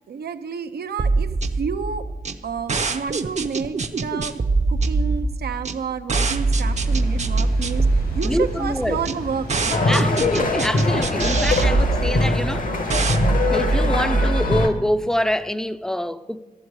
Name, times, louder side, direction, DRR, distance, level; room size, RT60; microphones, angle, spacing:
voice 1, 0.1-2.1 2.4-4.4 4.7-9.8, right 6 dB, 90° right, 0.6 m, -30 dB
sound 1, 1.0-14.6, right 3 dB, 45° right, 0.6 m, -23 dB
Water, 6.4-11.7, left 1 dB, 85° left, 3.9 m, -34 dB
voice 2, 8.2-9.0 9.9-12.7 13.5-16.4, equal, 5° left, 0.4 m, -25 dB
sound 2, 9.7-14.7, left 3 dB, 60° left, 1.1 m, -22 dB
12.5 x 7.9 x 4.8 m
wide cardioid pair, 85°, 16 cm